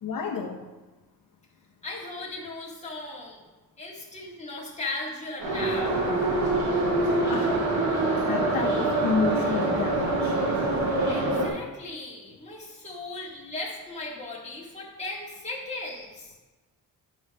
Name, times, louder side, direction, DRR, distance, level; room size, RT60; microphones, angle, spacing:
voice 1, 0.0-0.6 7.3-7.6 8.2-10.3, left 5 dB, 60° left, 0 dB, 0.9 m, -30 dB
voice 2, 1.8-3.4 3.8-5.9 11.1-16.3, left 2 dB, 20° left, -4 dB, 2.1 m, -37 dB
Subway metro underground, 5.4-11.5, right 2 dB, 80° right, 3.0 m, -25 dB
9.6 x 5.4 x 5.4 m, 1.2 s
wide cardioid pair, 170°, 37 cm